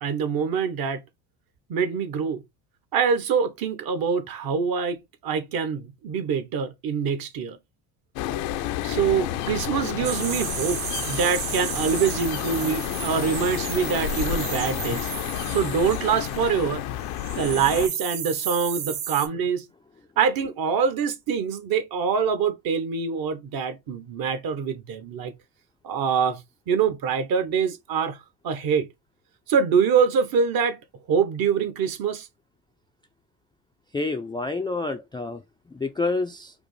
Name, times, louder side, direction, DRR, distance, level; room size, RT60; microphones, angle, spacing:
voice 1, 0.0-1.0 1.7-2.4 2.9-7.6 8.8-15.1 15.4-16.8 17.4-19.6 20.2-25.3 25.8-28.2 28.4-28.9 29.5-30.8 31.1-32.3, right 6 dB, 55° right, 1.0 m, -25 dB
sound 1, 8.2-17.9, left 11 dB, 75° left, 0.7 m, -30 dB
sound 2, 10.0-16.7 17.0-19.3, right 9 dB, 75° right, 1.3 m, -34 dB
voice 2, 33.9-35.4 35.7-36.5, left 3 dB, 10° left, 0.3 m, -28 dB
5.0 x 2.0 x 3.1 m
supercardioid pair, 95°, 44 cm